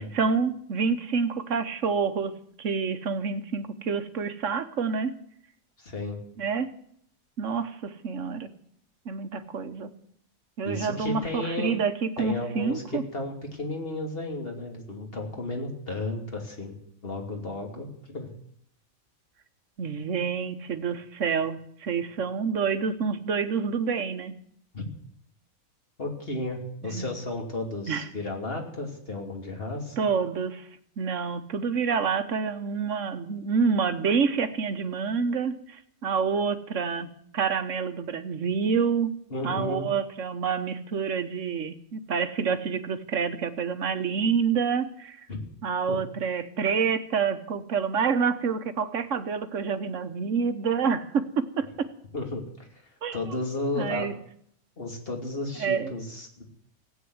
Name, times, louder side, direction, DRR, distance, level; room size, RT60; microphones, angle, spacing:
voice 1, 0.0-5.1 6.4-6.7 7.4-8.5 9.0-9.9 10.6-13.0 19.8-24.3 26.8-27.1 27.9-28.0 30.0-30.7 31.0-37.1 37.3-39.1 39.4-45.2 45.6-51.9 53.0-53.2 53.8-54.1 55.6-55.9, right 6 dB, 60° right, 10 dB, 1.4 m, -28 dB
voice 2, 5.8-6.2 10.6-11.8 12.2-16.8 17.0-18.3 24.7-24.8 26.0-30.1 39.3-39.8 45.3-45.4 45.9-46.0 52.1-52.8 53.1-54.1 54.8-56.4, left 2 dB, 40° left, 2 dB, 3.0 m, -33 dB
16.0 x 9.0 x 9.5 m, 0.68 s
omnidirectional pair, 1.5 m